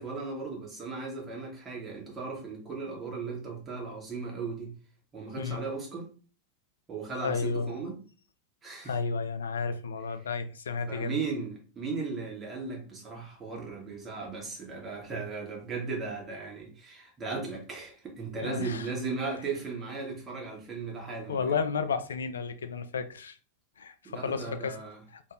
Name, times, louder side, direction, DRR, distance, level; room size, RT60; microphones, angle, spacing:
voice 1, 0.0-4.7 5.1-6.1 6.9-8.0 8.6-8.9 10.9-21.6 24.0-25.0, right 4 dB, 20° right, 1.2 m, -36 dB
voice 2, 7.2-7.7 8.8-11.2 18.4-18.9 21.3-23.4 23.8-24.8 25.1-25.2, left 5 dB, 70° left, 0.3 m, -32 dB
2.6 x 2.5 x 3.1 m
figure-of-eight pair, 90°, 0 cm